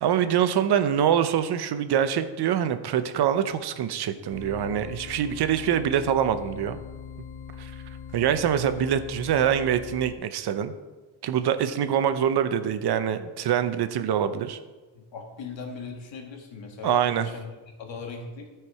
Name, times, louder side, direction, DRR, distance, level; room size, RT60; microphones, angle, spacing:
voice 1, 0.0-6.8 7.6-7.7 8.1-10.7 11.2-14.6 16.8-17.3, right 9 dB, 60° right, 10 dB, 0.7 m, -24 dB
sound 1, 4.3-10.1, left 7 dB, 30° left, 0.5 m, -41 dB
voice 2, 15.0-18.5, left 4 dB, 80° left, 2 dB, 1.8 m, -39 dB
13.0 x 4.7 x 4.7 m, 1.2 s
wide cardioid pair, 165°, 44 cm